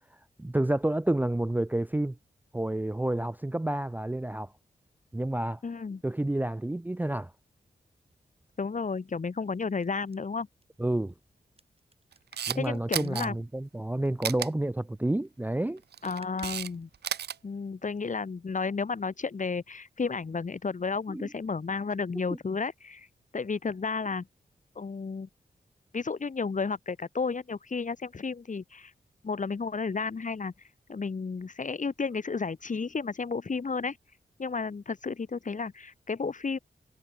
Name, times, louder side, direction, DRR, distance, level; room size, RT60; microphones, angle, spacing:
voice 1, 0.4-2.2 2.5-4.5 5.1-5.6 6.0-7.3 10.8-11.1 12.5-15.8 21.1-21.3 22.3-22.4, right 1 dB, 10° right, 0.5 m, -29 dB
voice 2, 5.6-6.0 8.6-10.5 12.5-13.4 16.0-16.9 17.4-23.1 23.3-24.3 24.7-25.3 25.9-28.9 29.2-30.5 30.9-34.0 34.4-36.6, left 4 dB, 50° left, 1.4 m, -32 dB
sound 1, 7.5-14.7 15.0-15.5 15.7-15.8 16.0-18.4, right 3 dB, 35° right, 3.4 m, -58 dB
Camera, 12.1-12.6 12.9-13.3 14.2-14.5 15.8-16.7 16.9-17.4, right 9 dB, 85° right, 0.9 m, -33 dB
cardioid pair, 40°, 17 cm